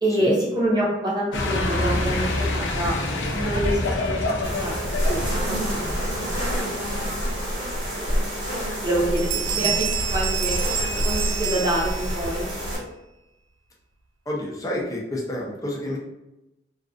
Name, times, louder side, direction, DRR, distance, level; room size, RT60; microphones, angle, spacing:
voice 1, 0.0-2.9 3.3-5.9 6.2-6.7 7.0-7.2 7.5-7.6 7.9-8.1 8.8-9.3 9.6-10.6 11.0-12.5, right 1 dB, 25° right, -5 dB, 0.7 m, -27 dB
sound 1, 1.3-8.1, left 2 dB, 85° left, 0.5 m, -27 dB
sound 2, 4.4-12.8, equal, 70° right, 1.3 m, -27 dB
sound 3, 8.7-8.9 9.2-12.3, right 8 dB, 90° right, 0.3 m, -28 dB
voice 2, 14.3-16.0, left 1 dB, 20° left, -3 dB, 0.5 m, -29 dB
2.4 x 2.3 x 2.4 m, 0.94 s
head